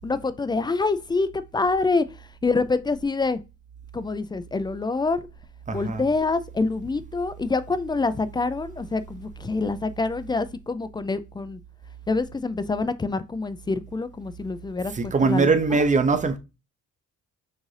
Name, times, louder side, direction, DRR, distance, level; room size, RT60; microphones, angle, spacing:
voice 1, 0.0-3.4 3.9-5.3 5.7-11.6 12.1-15.5, left 3 dB, 15° left, 0.3 m, -26 dB
voice 2, 5.7-6.0 14.9-16.4, right 4 dB, 25° right, 0.6 m, -21 dB
6.3 x 2.5 x 3.2 m
cardioid pair, 90°, 30 cm